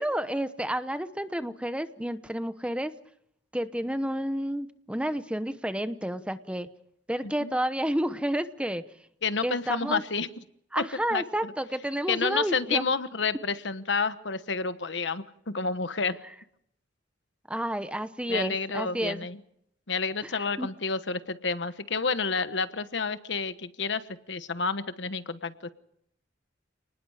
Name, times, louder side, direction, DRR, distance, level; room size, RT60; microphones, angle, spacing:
voice 1, 0.0-2.9 3.5-6.7 7.1-8.8 9.4-10.0 10.7-12.8 17.5-19.3 20.2-20.3 20.6-20.7, right 1 dB, 5° right, 11 dB, 0.9 m, -30 dB
voice 2, 7.2-7.6 9.2-10.3 10.8-10.9 11.1-11.5 12.1-16.2 18.3-19.4 19.9-25.7, left 4 dB, 70° left, 12 dB, 1.2 m, -30 dB
29.5 x 20.0 x 5.0 m, 0.72 s
head